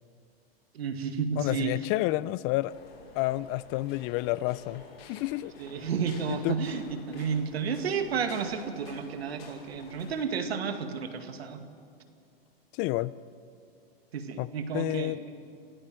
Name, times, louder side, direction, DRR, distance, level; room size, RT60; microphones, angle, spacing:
voice 1, 0.7-1.7 5.6-11.6 14.1-15.2, right 6 dB, 80° right, 7 dB, 2.2 m, -32 dB
voice 2, 1.4-2.7 3.1-5.5 6.3-6.6 12.7-13.1 14.4-15.2, left 18 dB, 40° left, 19 dB, 0.6 m, -30 dB
sound 1, 2.7-10.2, left 4 dB, 70° left, 6.1 m, -50 dB
28.0 x 15.5 x 7.6 m, 2.5 s
hypercardioid pair, 110°, 31 cm